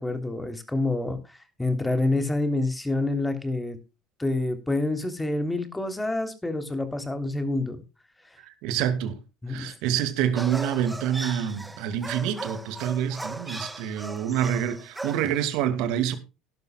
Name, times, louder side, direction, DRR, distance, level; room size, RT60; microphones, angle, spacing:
voice 1, 0.0-3.8 4.2-7.8 9.4-9.7 13.5-13.6, left 2 dB, 10° left, 3.5 m, -27 dB
voice 2, 8.4-9.2 9.5-16.2, right 9 dB, 65° right, 2.4 m, -27 dB
sound 1, 10.4-15.5, right 2 dB, 10° right, 2.1 m, -38 dB
17.0 x 12.0 x 2.4 m
hypercardioid pair, 70°, 0 cm